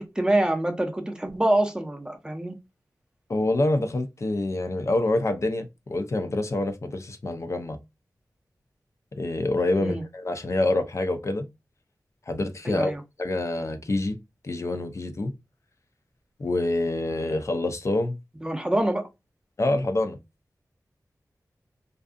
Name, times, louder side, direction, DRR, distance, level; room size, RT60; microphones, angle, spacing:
voice 1, 0.0-2.6 9.7-10.0 12.6-13.0 18.4-19.1, right 1 dB, 10° right, 0.5 m, -25 dB
voice 2, 3.3-7.8 9.1-11.5 12.3-12.9 13.2-14.2 14.4-15.3 16.4-18.2 19.6-20.2, left 2 dB, 45° left, 0.4 m, -26 dB
2.5 x 2.3 x 2.4 m
wide cardioid pair, 75°, 7 cm